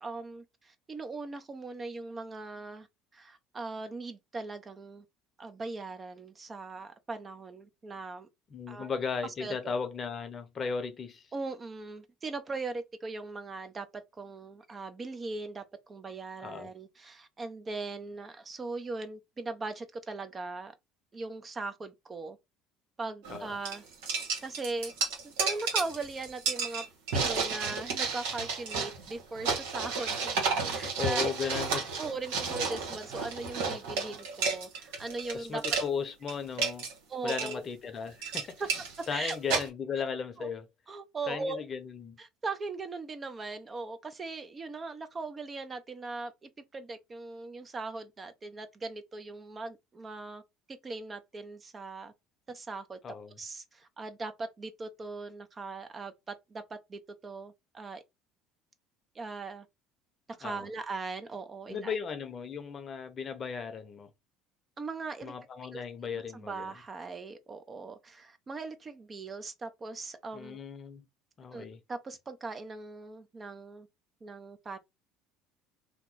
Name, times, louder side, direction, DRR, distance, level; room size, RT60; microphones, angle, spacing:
voice 1, 0.0-2.9 3.1-5.0 5.4-8.3 8.7-8.9 9.4-9.7 11.3-20.7 21.1-22.4 23.0-23.8 24.4-24.9 25.2-26.9 27.1-31.6 32.0-35.6 37.1-37.6 38.6-38.7 39.0-39.6 40.4-40.5 40.9-41.6 42.2-50.4 50.7-52.1 52.5-58.0 59.1-59.7 60.3-61.9 64.8-65.3 65.7-65.8 66.3-70.6 71.5-73.9 74.2-74.8, right 3 dB, 30° right, 0.6 m, -39 dB
voice 2, 8.5-11.2 16.4-16.7 23.3-23.6 31.0-31.8 35.3-36.9 37.2-38.4 39.1-40.7 41.3-42.2 53.0-53.4 60.4-60.7 61.7-64.1 65.2-66.7 70.3-71.0 71.4-71.8, left 6 dB, 40° left, 0.7 m, -36 dB
sound 1, 23.2-23.4 23.6-35.3 35.6-35.9 36.3-36.9 37.3-37.5 38.0-39.7, right 4 dB, 80° right, 1.2 m, -32 dB
2.9 x 2.1 x 3.8 m
supercardioid pair, 85°, 0 cm